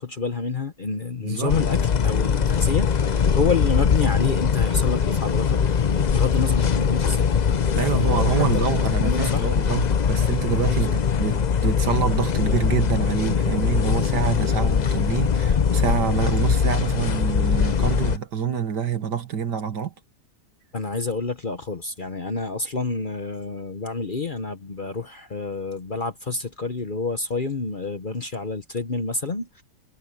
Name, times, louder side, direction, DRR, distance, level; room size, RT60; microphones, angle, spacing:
voice 1, 0.0-5.6 5.9-7.3 7.7-9.5 10.7-10.9 20.7-29.6, left 4 dB, 35° left, 1.0 m, -28 dB
voice 2, 1.2-1.6 7.7-19.9, right 7 dB, 75° right, 2.2 m, -26 dB
sound 1, 1.5-18.2, left 7 dB, 90° left, 0.3 m, -21 dB
omnidirectional pair, 1.8 m